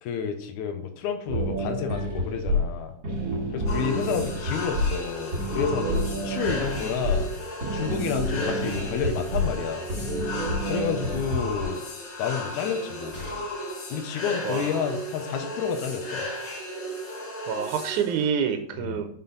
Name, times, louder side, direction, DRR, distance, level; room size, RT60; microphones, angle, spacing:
voice 1, 0.0-2.9 3.5-7.3 7.7-9.9 10.7-11.8 12.2-13.2 13.9-16.2 18.8-19.0, left 7 dB, 80° left, 5 dB, 2.1 m, -30 dB
sound 1, 1.3-11.6, equal, 35° right, 2.3 m, -29 dB
sound 2, 3.7-18.3, left 1 dB, 50° left, 1.4 m, -35 dB
sound 3, 13.1-13.8 15.8-15.9 16.2-16.3, left 2 dB, 30° left, 1.6 m, -43 dB
voice 2, 14.4-14.8 17.5-19.1, right 7 dB, 80° right, 7 dB, 2.0 m, -27 dB
5.7 x 4.4 x 3.9 m, 0.66 s
omnidirectional pair, 3.5 m